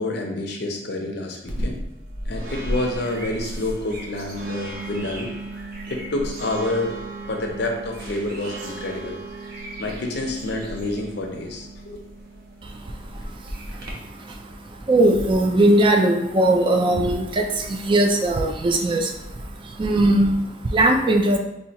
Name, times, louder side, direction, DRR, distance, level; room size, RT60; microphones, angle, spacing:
voice 1, 0.0-1.8 2.3-5.3 5.9-6.9 7.2-9.2 9.8-12.0, left 2 dB, 65° left, 2 dB, 0.6 m, -28 dB
sound 1, 1.5-13.9, right 1 dB, 55° right, 0.7 m, -34 dB
voice 2, 12.6-21.4, right 1 dB, 30° right, 3 dB, 0.3 m, -20 dB
4.2 x 2.3 x 2.8 m, 0.85 s
head